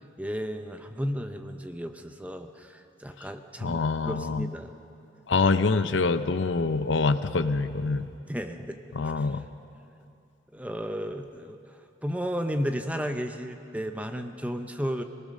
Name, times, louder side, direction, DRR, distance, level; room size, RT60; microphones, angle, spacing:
voice 1, 0.2-4.7 8.3-8.8 9.0-9.4 10.5-11.6 12.0-15.0, equal, 5° right, 6 dB, 0.8 m, -33 dB
voice 2, 3.6-4.5 5.3-8.1 8.9-9.4, left 4 dB, 70° left, 12 dB, 0.7 m, -25 dB
24.0 x 18.0 x 6.5 m, 2.6 s
head